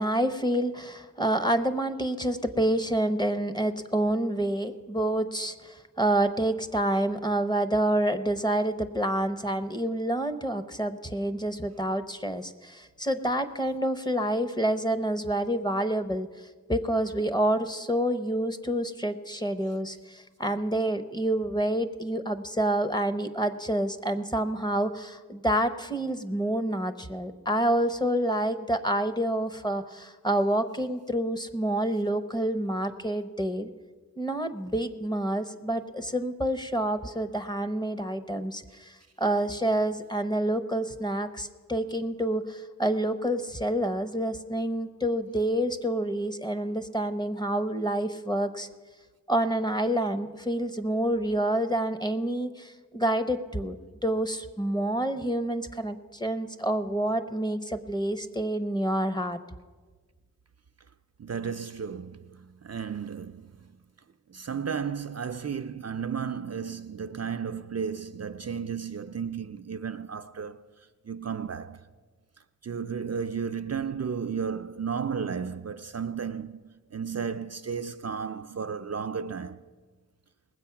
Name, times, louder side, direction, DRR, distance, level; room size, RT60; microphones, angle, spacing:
voice 1, 0.0-16.3 16.7-33.7 34.2-48.7 49.3-53.8 54.0-59.4, right 1 dB, 15° left, 0.7 m, -28 dB
voice 2, 61.2-63.7 64.3-70.7 71.0-71.9 72.6-79.6, right 6 dB, 50° right, 0.4 m, -33 dB
19.5 x 7.8 x 5.8 m
wide cardioid pair, 45°, 33 cm